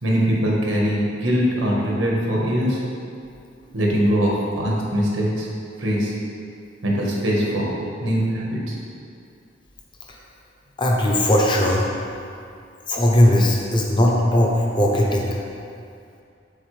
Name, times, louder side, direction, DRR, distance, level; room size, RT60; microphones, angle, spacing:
voice 1, 0.0-2.8 3.7-5.5 5.8-6.1 6.8-7.7 8.0-8.7, equal, 85° right, -3 dB, 1.2 m, -22 dB
voice 2, 10.8-11.9 12.9-15.3, left 1 dB, 25° left, -1 dB, 0.7 m, -18 dB
7.2 x 4.0 x 3.2 m, 2.5 s
head